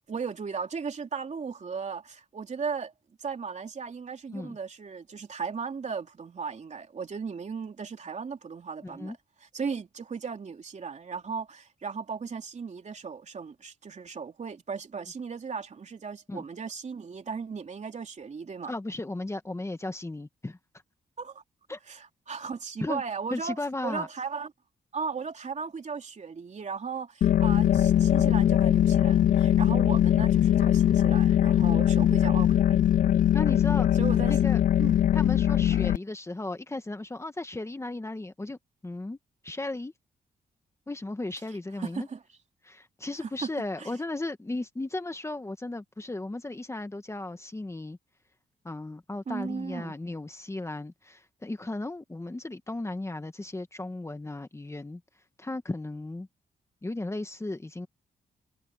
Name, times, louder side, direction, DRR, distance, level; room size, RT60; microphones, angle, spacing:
voice 1, 0.1-2.9 3.2-9.1 9.5-18.7 21.2-21.4 21.9-24.5 24.9-32.8 34.0-34.3 34.8-35.0 41.8-42.2 43.2-43.3 43.8-43.9 49.3-50.0, right 5 dB, 45° right, 3.3 m, -36 dB
voice 2, 8.8-9.2 16.3-16.4 18.7-20.6 21.7-21.8 22.8-23.0 23.3-24.1 33.3-33.9 34.3-34.6 35.1-39.2 39.4-39.9 40.9-42.1 42.6-48.0 48.6-55.0 55.4-56.3 56.8-57.9, left 2 dB, 15° left, 1.6 m, -35 dB
sound 1, 27.2-36.0, left 11 dB, 55° left, 0.4 m, -21 dB
cardioid pair, 85°, 16 cm